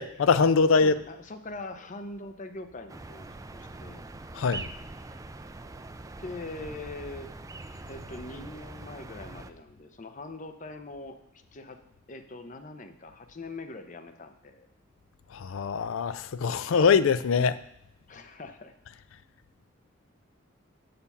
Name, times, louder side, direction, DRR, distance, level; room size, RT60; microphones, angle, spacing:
voice 1, 0.0-1.0 4.3-4.7 15.3-17.6, left 5 dB, 70° left, 0.4 m, -23 dB
voice 2, 0.8-4.1 6.2-7.3 7.9-11.8 12.1-14.7 18.1-18.7, left 2 dB, 40° left, 0.7 m, -42 dB
sound 1, 2.9-9.5, right 2 dB, 15° right, 0.4 m, -43 dB
7.1 x 6.7 x 5.5 m
head